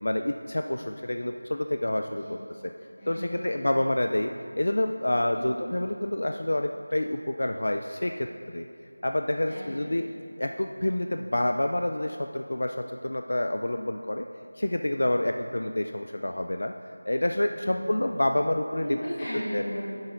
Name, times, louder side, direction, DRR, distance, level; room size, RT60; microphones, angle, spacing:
voice 1, 0.0-2.4 3.1-8.7 9.0-10.0 10.4-14.3 14.6-16.7 17.1-19.0 19.5-19.6, left 1 dB, 55° left, 5 dB, 0.3 m, -28 dB
voice 2, 3.0-3.7 5.3-5.7 9.5-10.0 17.6-18.2 18.8-19.8, equal, 10° left, -15 dB, 1.8 m, -36 dB
10.5 x 7.9 x 2.5 m, 2.5 s
figure-of-eight pair, 180°, 0 cm